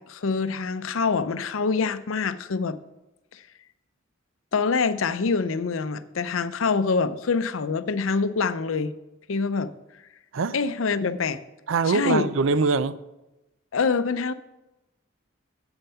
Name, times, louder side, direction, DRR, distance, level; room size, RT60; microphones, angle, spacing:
voice 1, 0.0-2.8 3.3-3.4 4.5-8.9 9.3-9.7 10.5-11.4 11.9-12.3 13.7-14.3, left 4 dB, 80° left, 0.6 m, -25 dB
voice 2, 11.7-13.0, right 4 dB, 75° right, 0.4 m, -23 dB
9.0 x 8.0 x 5.6 m
head